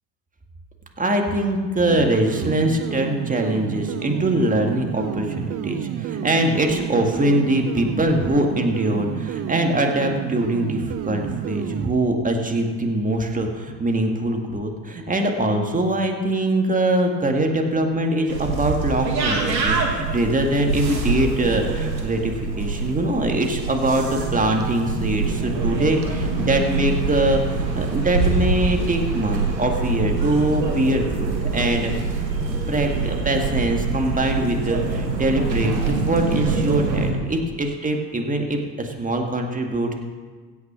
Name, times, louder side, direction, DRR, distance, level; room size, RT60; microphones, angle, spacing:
voice 1, 1.0-31.9 32.2-32.3 32.7-39.9, right 1 dB, 15° right, 3 dB, 2.0 m, -23 dB
sound 1, 1.9-11.9, right 12 dB, 35° right, 0.4 m, -30 dB
sound 2, 18.3-37.1, right 4 dB, 85° right, 1.7 m, -25 dB
16.0 x 6.1 x 6.1 m, 1.5 s
hypercardioid pair, 65°, 49 cm